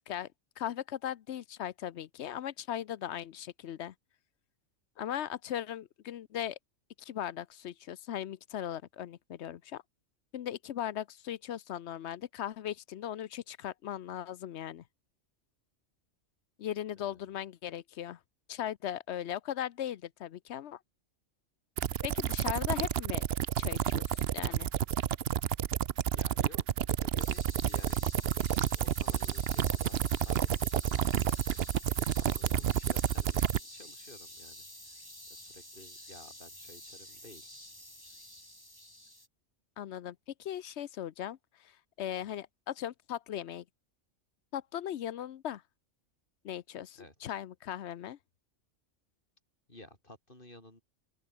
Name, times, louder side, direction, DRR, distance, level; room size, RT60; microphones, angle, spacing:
voice 1, 0.6-3.9 5.0-6.6 7.0-9.8 10.3-14.8 16.6-18.2 18.5-20.8 22.0-23.2 23.6-24.7 39.8-41.7 42.0-43.6 44.5-45.6 46.4-48.2, left 10 dB, 65° left, 0.9 m, -38 dB
voice 2, 16.9-17.3 26.1-34.7 35.3-37.5 42.2-42.3 46.9-47.3 49.7-50.8, left 1 dB, 45° left, 6.2 m, -55 dB
sound 1, 21.8-33.6, right 10 dB, 60° right, 0.9 m, -30 dB
sound 2, 27.2-39.3, left 1 dB, 15° left, 6.0 m, -49 dB
open air
omnidirectional pair, 1.3 m